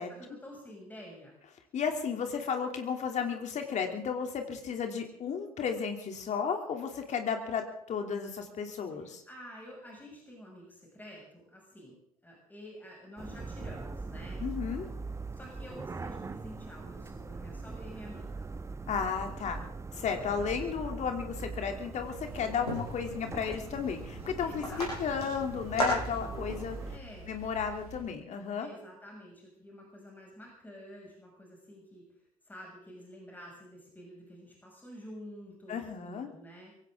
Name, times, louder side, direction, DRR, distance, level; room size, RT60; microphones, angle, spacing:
voice 1, 0.1-1.4 8.9-14.4 15.3-18.4 24.4-24.9 26.9-27.3 28.6-32.1 32.4-36.7, equal, 10° left, -2 dB, 6.6 m, -49 dB
voice 2, 1.7-7.6 7.9-9.2 14.4-14.9 18.9-19.6 19.9-26.8 27.3-28.7 35.7-36.3, left 6 dB, 40° left, 4 dB, 3.0 m, -33 dB
sound 1, 13.2-27.0, right 3 dB, 15° right, 1.0 m, -41 dB
sound 2, 22.0-28.0, right 1 dB, 90° left, 7.2 m, -38 dB
23.0 x 17.0 x 3.8 m, 0.71 s
figure-of-eight pair, 60°, 19 cm